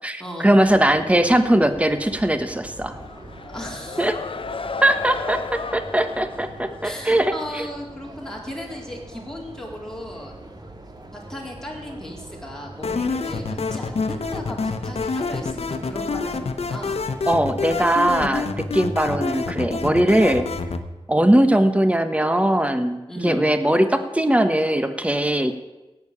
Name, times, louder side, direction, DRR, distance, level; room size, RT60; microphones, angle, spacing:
voice 1, 0.0-3.0 4.0-4.1 4.8-7.7 17.3-20.5 21.1-25.6, right 1 dB, 10° right, 9 dB, 1.3 m, -20 dB
sound 1, 0.6-17.3, right 2 dB, 40° right, 2.2 m, -42 dB
M Short approval - staggered alt, 2.9-7.4, left 4 dB, 60° left, 0.8 m, -34 dB
voice 2, 3.4-4.1 6.8-10.3 11.1-17.0 23.1-23.5, left 1 dB, 5° left, -2 dB, 4.1 m, -36 dB
sound 2, 12.8-20.8, left 4 dB, 80° left, 1.0 m, -27 dB
17.5 x 7.2 x 8.6 m, 1.1 s
wide cardioid pair, 70°, 10 cm